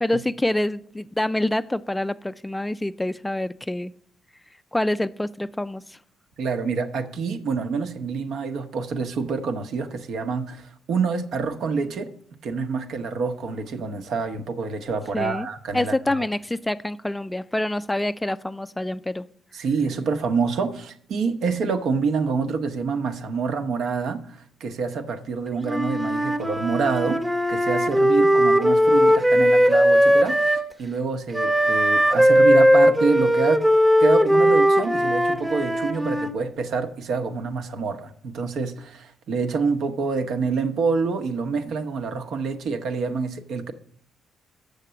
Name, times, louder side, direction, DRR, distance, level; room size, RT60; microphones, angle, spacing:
voice 1, 0.0-3.9 4.7-6.0 15.1-15.5 15.7-19.3, left 1 dB, 10° left, 0.3 m, -26 dB
voice 2, 6.4-12.1 12.4-16.2 19.5-27.2 27.5-30.4 30.8-33.6 34.0-43.7, right 4 dB, 70° right, 0.9 m, -27 dB
Wind instrument woodwind instrument, 25.6-30.6 31.3-36.3, equal, 10° right, 0.8 m, -18 dB
7.2 x 6.6 x 6.8 m
cardioid pair, 90°, 0 cm